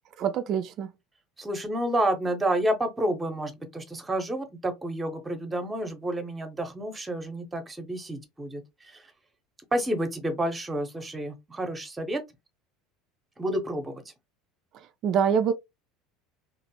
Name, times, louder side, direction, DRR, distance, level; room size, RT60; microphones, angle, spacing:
voice 1, 0.2-0.9 14.7-15.5, right 7 dB, 45° right, 0.3 m, -25 dB
voice 2, 1.4-9.0 9.7-12.2 13.4-14.0, right 1 dB, 15° right, 0.8 m, -30 dB
2.9 x 2.1 x 2.8 m
figure-of-eight pair, 70°, 0 cm